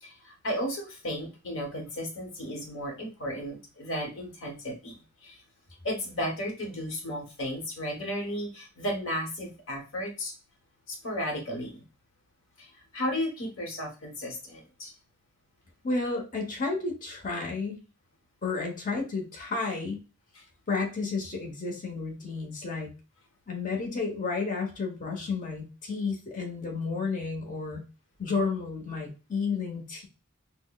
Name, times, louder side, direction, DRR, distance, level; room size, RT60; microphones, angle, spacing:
voice 1, 0.0-5.4 5.8-10.3 10.9-11.8 12.6-14.9 20.3-20.5, equal, 65° left, 2 dB, 1.0 m, -34 dB
voice 2, 15.8-17.8 18.4-20.0 20.7-22.9 23.5-27.8 28.2-30.1, left 4 dB, 40° left, 0 dB, 0.9 m, -32 dB
5.8 x 2.0 x 2.3 m, 0.31 s
head